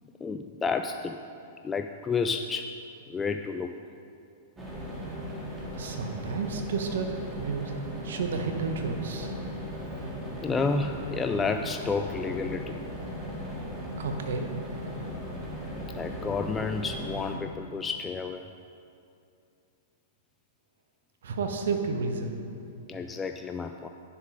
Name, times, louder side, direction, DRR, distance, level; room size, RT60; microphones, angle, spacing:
voice 1, 0.2-1.2 1.6-2.7 3.1-3.7 10.4-12.8 15.9-18.4 22.9-23.9, left 4 dB, 15° left, 6 dB, 0.3 m, -30 dB
sound 1, 4.6-17.4, equal, 15° right, 2.2 m, -37 dB
voice 2, 5.7-7.7 8.0-9.3 14.0-14.5 21.2-22.4, right 4 dB, 75° right, 5 dB, 1.1 m, -31 dB
9.6 x 7.3 x 5.1 m, 2.6 s
hypercardioid pair, 125°, 0 cm